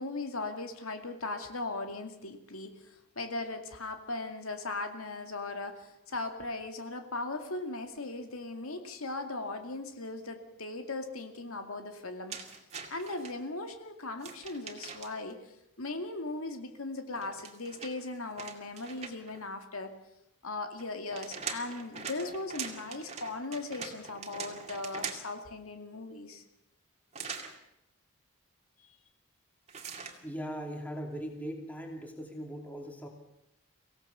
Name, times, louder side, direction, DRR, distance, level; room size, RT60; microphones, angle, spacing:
voice 1, 0.0-12.4 12.9-15.4 15.8-19.9 20.4-26.4 30.0-30.1, left 2 dB, 85° left, 6 dB, 2.3 m, -38 dB
sound 1, 12.3-13.3 14.2-15.3 17.1-19.4 20.8-25.4 27.1-27.5 29.7-30.2, right 6 dB, 30° right, 2.2 m, -42 dB
voice 2, 30.2-33.1, equal, 5° left, 2 dB, 2.8 m, -39 dB
24.5 x 17.0 x 6.9 m, 0.83 s
head